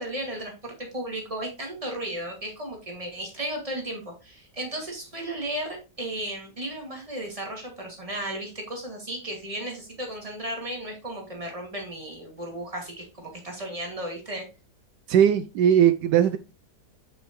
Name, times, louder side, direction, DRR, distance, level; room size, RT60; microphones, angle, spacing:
voice 1, 0.0-14.5, right 1 dB, 20° right, 1 dB, 2.3 m, -35 dB
voice 2, 15.1-16.4, right 9 dB, 80° right, 11 dB, 1.2 m, -19 dB
8.1 x 6.2 x 3.1 m, 0.29 s
omnidirectional pair, 1.8 m